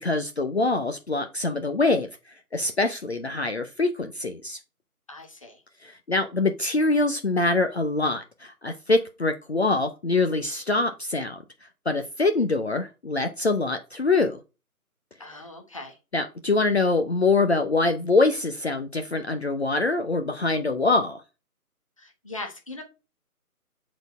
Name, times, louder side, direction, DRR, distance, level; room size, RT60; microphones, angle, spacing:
voice 1, 0.0-2.1 2.5-4.6 5.8-14.4 16.1-21.2, left 3 dB, 45° left, 0.8 m, -24 dB
voice 2, 5.1-5.6 15.2-16.0 22.0-22.8, left 2 dB, 20° left, 1.0 m, -39 dB
7.9 x 4.2 x 4.4 m
figure-of-eight pair, 160°, 45 cm